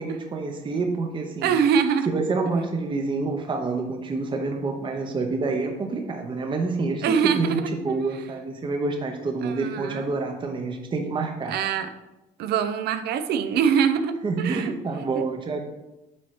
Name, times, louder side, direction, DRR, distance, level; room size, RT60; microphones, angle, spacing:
voice 1, 0.0-1.5 2.1-11.6 14.2-15.6, right 3 dB, 30° right, 4 dB, 0.8 m, -28 dB
voice 2, 1.4-2.1 2.5-2.6 7.0-7.6 7.9-8.3 9.4-10.1 11.5-11.9 12.4-14.7 15.1-15.2, right 7 dB, 75° right, 10 dB, 0.6 m, -24 dB
8.4 x 2.9 x 4.9 m, 0.99 s
cardioid pair, 110°, 17 cm